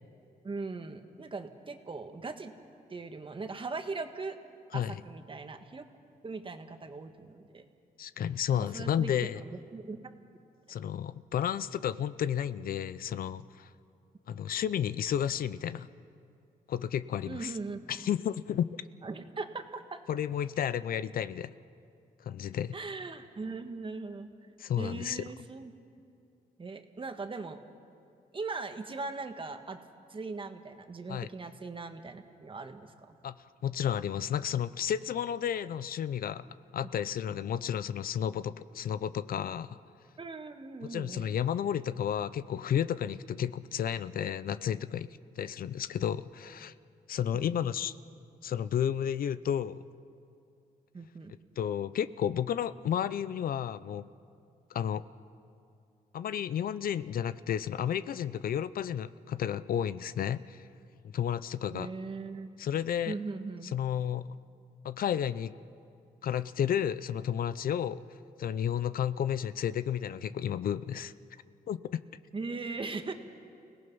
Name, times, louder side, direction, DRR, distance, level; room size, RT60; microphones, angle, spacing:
voice 1, 0.4-2.5 2.9-4.4 4.7-5.9 6.2-7.6 8.5-10.0 17.3-17.8 19.0-20.0 22.7-24.3 24.8-25.7 26.6-27.6 28.3-29.8 30.1-32.9 40.2-41.4 47.3-47.7 50.9-51.3 61.7-62.5 63.1-63.7 72.3-73.1, right 3 dB, 35° right, 7 dB, 1.5 m, -39 dB
voice 2, 8.0-9.4 10.7-13.7 14.3-15.9 16.7-17.5 17.9-18.7 20.1-21.5 22.2-22.7 24.6-25.2 31.1-31.3 33.2-33.3 33.6-36.5 36.7-39.8 40.8-45.1 45.4-46.7 47.1-47.9 48.4-49.8 51.6-54.1 54.7-55.0 56.1-60.7 61.1-61.9 62.6-63.2 63.7-64.4 64.8-65.5 66.2-68.0 68.4-71.1 71.7-72.0, left 9 dB, 70° left, 15 dB, 0.6 m, -32 dB
30.0 x 18.0 x 5.5 m, 2.5 s
cardioid pair, 90°, 16 cm